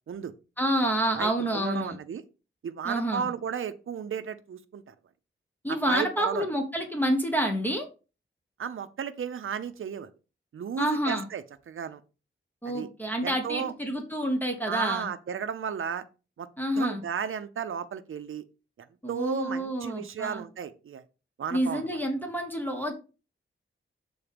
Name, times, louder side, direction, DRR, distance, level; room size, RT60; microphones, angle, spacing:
voice 1, 0.6-1.9 2.8-3.3 5.6-7.9 10.8-11.3 12.6-15.1 16.6-17.0 19.0-20.4 21.5-22.9, equal, 10° left, 3 dB, 1.1 m, -28 dB
voice 2, 1.2-2.2 2.6-4.9 5.7-6.5 8.6-10.1 10.5-12.0 12.6-12.9 13.2-13.7 14.7-16.0 16.4-16.5 16.8-18.4 19.1-21.0 21.4-21.9, right 7 dB, 85° right, 11 dB, 0.6 m, -34 dB
7.2 x 3.9 x 5.1 m, 0.32 s
wide cardioid pair, 130°, 21 cm